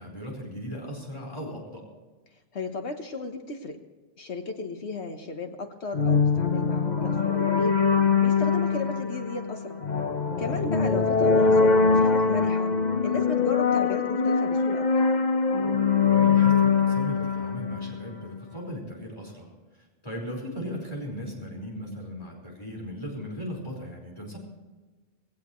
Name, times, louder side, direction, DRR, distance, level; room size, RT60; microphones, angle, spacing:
voice 1, 0.0-1.8 10.4-10.8 16.0-24.4, equal, 25° left, -2 dB, 4.9 m, -37 dB
voice 2, 2.5-3.8 4.2-7.8 8.2-9.8 10.4-12.7 13.0-14.9, left 3 dB, 70° left, 5 dB, 1.5 m, -34 dB
sound 1, 5.9-18.4, left 5 dB, 40° left, 1.1 m, -23 dB
19.5 x 17.5 x 3.2 m, 1.3 s
omnidirectional pair, 1.2 m